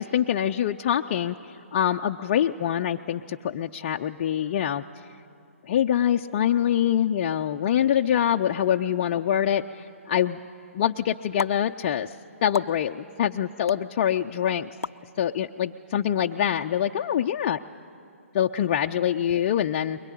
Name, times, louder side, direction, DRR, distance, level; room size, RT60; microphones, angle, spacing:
voice 1, 0.0-4.8 5.7-10.4 10.7-12.1 12.4-14.7 15.2-17.6 18.3-20.0, left 10 dB, 35° left, 2 dB, 0.5 m, -25 dB
sound 1, 11.4-11.5 12.5-12.7 13.7-13.8 14.8-15.0, left 4 dB, 80° left, 0.5 m, -30 dB
22.0 x 21.5 x 10.0 m, 2.5 s
figure-of-eight pair, 140°, 8 cm